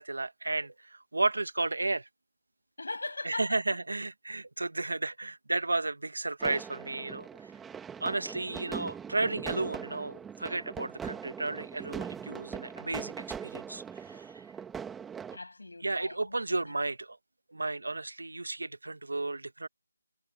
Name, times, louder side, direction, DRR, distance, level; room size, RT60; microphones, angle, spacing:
voice 1, 0.0-2.1 3.2-7.5 8.0-14.5 15.8-17.2 17.5-19.7, right 2 dB, 80° right, 1.4 m, -33 dB
voice 2, 2.8-3.6 15.3-16.6, left 2 dB, 85° left, 7.7 m, -39 dB
sound 1, 6.4-15.4, right 7 dB, 5° right, 1.7 m, -41 dB
figure-of-eight pair, 175°, 0 cm